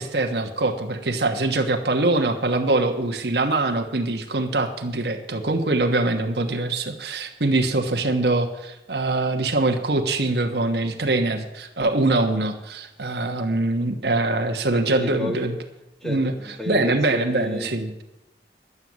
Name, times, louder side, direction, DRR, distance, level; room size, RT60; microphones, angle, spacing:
voice 1, 0.0-15.6 16.0-16.3 16.7-18.0, right 2 dB, 70° right, 4 dB, 1.2 m, -23 dB
voice 2, 14.7-15.5 16.0-17.7, left 1 dB, 5° left, 3 dB, 1.4 m, -32 dB
11.0 x 9.4 x 7.4 m, 0.94 s
head